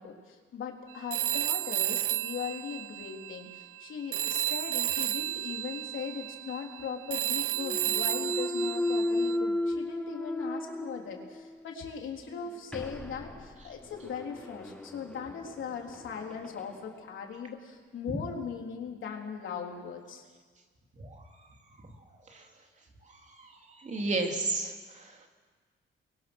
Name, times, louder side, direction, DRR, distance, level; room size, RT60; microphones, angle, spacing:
voice 1, 0.0-20.3, left 6 dB, 65° left, 1 dB, 3.8 m, -39 dB
Telephone, 1.1-3.8 4.1-9.4, right 14 dB, 85° right, 0.9 m, -32 dB
Thump thud, 7.5-11.6 12.0-16.7, left 1 dB, 5° left, 1.5 m, -35 dB
voice 2, 23.8-24.7 25.0-25.1, right 3 dB, 35° right, 2 dB, 2.9 m, -31 dB
30.0 x 22.5 x 6.3 m, 1.5 s
cardioid pair, 145°, 21 cm